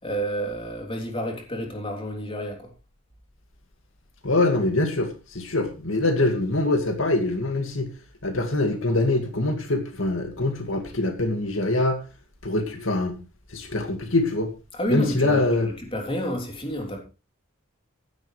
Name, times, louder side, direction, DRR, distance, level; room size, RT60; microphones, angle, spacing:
voice 1, 0.0-2.7 14.7-17.0, equal, 25° left, 3.3 m, -30 dB
voice 2, 4.2-7.9 8.2-12.0 12.4-13.2 13.5-14.5 14.9-15.7, left 2 dB, 70° left, 2.2 m, -24 dB
15.5 x 11.5 x 3.4 m
head